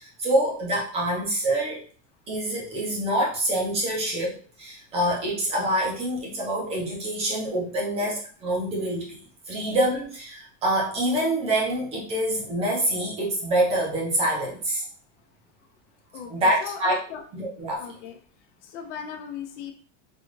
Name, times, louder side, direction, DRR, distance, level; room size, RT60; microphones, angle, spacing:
voice 1, 0.0-1.8 2.3-9.2 9.5-14.8 16.3-16.9 17.3-17.8, right 1 dB, 15° right, -3 dB, 0.6 m, -26 dB
voice 2, 16.1-17.2 17.8-18.2 18.6-19.7, left 7 dB, 75° left, 6 dB, 0.8 m, -37 dB
4.0 x 2.4 x 3.1 m, 0.44 s
supercardioid pair, 175°, 36 cm